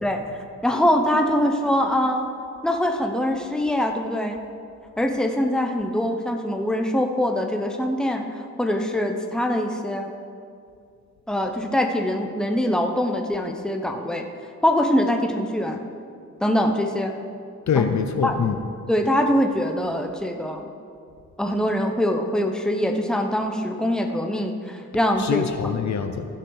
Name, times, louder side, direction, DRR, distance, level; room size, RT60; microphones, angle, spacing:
voice 1, 0.6-2.3 2.6-4.4 5.0-10.1 11.3-14.2 14.6-15.8 16.4-17.1 17.7-17.8 18.2-18.4 18.9-20.7 21.4-25.5, left 1 dB, ahead, 4 dB, 1.0 m, -23 dB
voice 2, 17.7-18.6 25.2-26.3, left 6 dB, 65° left, 7 dB, 0.8 m, -24 dB
15.5 x 5.8 x 4.9 m, 2.3 s
cardioid pair, 75°, 30 cm